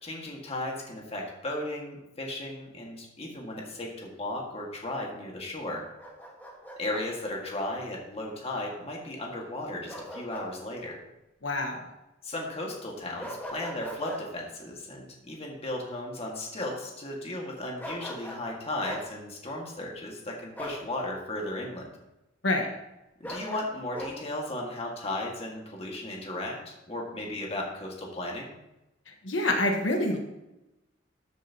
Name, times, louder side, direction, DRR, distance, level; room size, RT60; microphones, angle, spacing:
voice 1, 0.0-5.8 6.8-11.0 12.2-21.9 23.2-28.5, left 1 dB, 35° left, -1 dB, 1.8 m, -35 dB
Bark, 6.0-7.1 9.9-10.5 10.8-11.0 13.2-14.2 17.8-18.5 18.8-19.1 20.6-20.8 23.2-24.1, equal, 10° left, 1.5 m, -39 dB
voice 2, 11.4-11.8 22.4-22.7 29.2-30.2, left 1 dB, 85° left, 2 dB, 1.3 m, -26 dB
13.5 x 7.2 x 2.9 m, 0.95 s
head